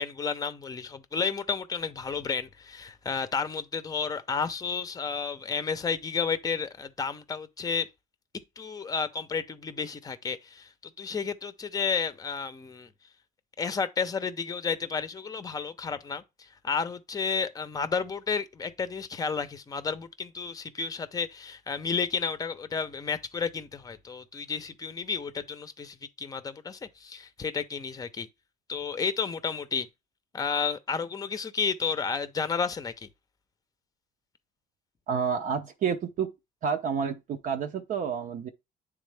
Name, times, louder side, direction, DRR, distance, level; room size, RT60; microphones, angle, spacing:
voice 1, 0.0-7.9 8.6-10.7 11.0-12.9 13.6-28.3 28.7-29.9 30.3-33.1, left 5 dB, 20° left, 0.6 m, -32 dB
voice 2, 35.1-36.3 36.6-38.5, right 6 dB, 50° right, 0.6 m, -29 dB
9.3 x 3.5 x 3.3 m
cardioid pair, 110°, 17 cm